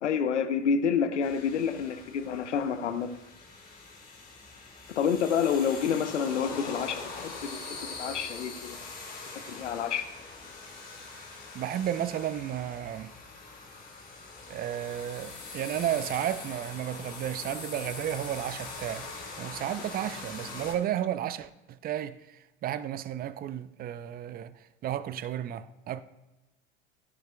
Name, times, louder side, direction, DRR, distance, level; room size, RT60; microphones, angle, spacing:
voice 1, 0.0-3.1 4.9-8.9 9.5-10.1, left 7 dB, 80° left, 0.8 m, -29 dB
sound 1, 1.2-20.7, left 4 dB, 25° left, 3.6 m, -43 dB
voice 2, 11.5-13.1 14.5-19.1 19.4-26.0, right 11 dB, 25° right, 0.5 m, -33 dB
15.5 x 10.0 x 2.2 m
figure-of-eight pair, 70°, 35 cm